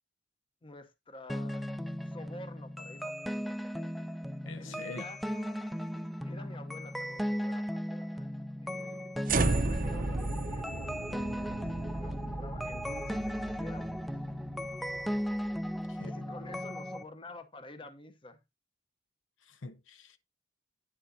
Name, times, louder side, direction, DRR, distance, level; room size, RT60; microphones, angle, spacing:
voice 1, 0.6-1.7 2.0-3.6 4.6-5.6 6.2-9.2 9.4-14.0 15.6-18.4, left 2 dB, 25° left, 0.9 m, -50 dB
sound 1, 1.3-17.0, equal, ahead, 0.4 m, -37 dB
voice 2, 4.5-5.0 15.9-16.3 19.4-20.2, left 3 dB, 70° left, 0.8 m, -45 dB
sound 2, 9.3-15.6, right 2 dB, 45° right, 0.7 m, -34 dB
9.4 x 7.5 x 2.7 m
head